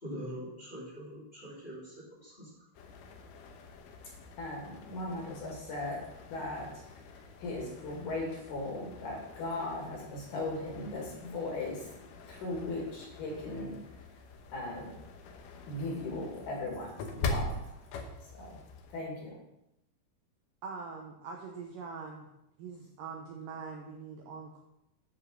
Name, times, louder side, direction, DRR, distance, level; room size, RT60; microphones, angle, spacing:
voice 1, 0.0-2.6, equal, 15° left, -6 dB, 1.9 m, -43 dB
sound 1, 2.7-19.0, left 3 dB, 80° left, 1.9 m, -44 dB
voice 2, 4.4-6.0 6.3-6.8 7.4-11.9 12.3-13.8 14.5-14.9 15.7-17.6 18.4-18.5 18.9-19.4, left 2 dB, 50° left, -2 dB, 3.2 m, -37 dB
voice 3, 20.6-22.3 22.6-24.6, right 5 dB, 90° right, 1 dB, 1.9 m, -43 dB
10.5 x 5.1 x 6.3 m, 0.86 s
omnidirectional pair, 5.1 m